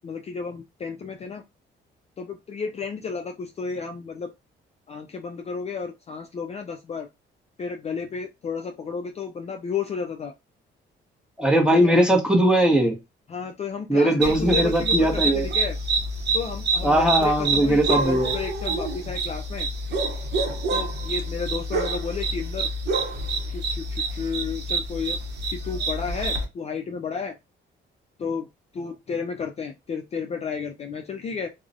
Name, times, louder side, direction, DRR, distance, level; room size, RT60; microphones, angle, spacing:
voice 1, 0.0-1.4 2.2-4.3 4.9-7.1 7.6-10.3 11.7-12.0 13.3-15.8 16.3-19.7 20.7-22.7 23.5-25.2 25.5-27.4 28.2-28.5 28.7-31.5, left 5 dB, 35° left, 0.3 m, -32 dB
voice 2, 11.4-13.0 13.9-15.5 16.8-18.4, right 1 dB, 5° right, 0.8 m, -19 dB
sound 1, 14.2-26.4, right 3 dB, 60° right, 0.7 m, -27 dB
2.3 x 2.0 x 2.6 m
cardioid pair, 90°, 20 cm